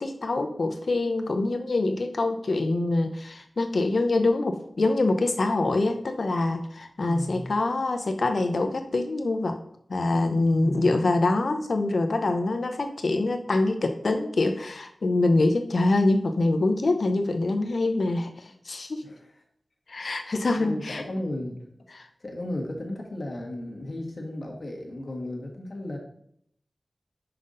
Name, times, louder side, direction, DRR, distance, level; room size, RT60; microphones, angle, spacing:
voice 1, 0.0-9.6 9.9-19.0 19.9-21.0 21.9-22.1, left 2 dB, 70° left, 7 dB, 0.6 m, -25 dB
voice 2, 7.1-7.5 10.6-11.2 18.1-18.2 19.0-19.2 20.3-21.6 22.2-26.0, left 1 dB, 55° left, 0 dB, 1.5 m, -35 dB
5.7 x 5.4 x 3.8 m, 0.68 s
wide cardioid pair, 60°, 0 cm